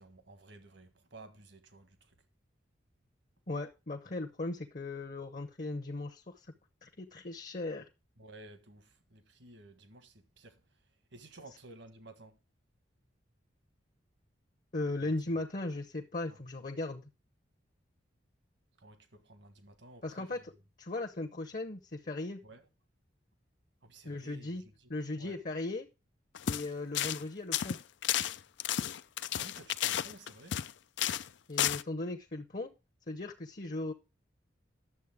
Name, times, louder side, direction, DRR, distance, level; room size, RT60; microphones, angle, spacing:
voice 1, 0.0-2.1 8.2-10.6 11.1-12.4 15.0-15.1 16.3-16.4 18.8-20.4 22.4-22.7 23.8-24.9 25.2-25.4 29.4-30.6, right 2 dB, 70° right, 1.5 m, -54 dB
voice 2, 3.5-6.5 6.8-7.8 14.7-17.0 20.0-20.5 20.8-22.4 24.0-25.9 26.5-27.8 31.5-32.7 33.1-33.9, left 2 dB, 40° left, 0.9 m, -37 dB
sound 1, 26.3-26.7 26.9-27.2 27.5-30.7 31.0-31.3 31.6-31.8, left 11 dB, 70° left, 0.4 m, -32 dB
11.0 x 7.4 x 3.5 m
head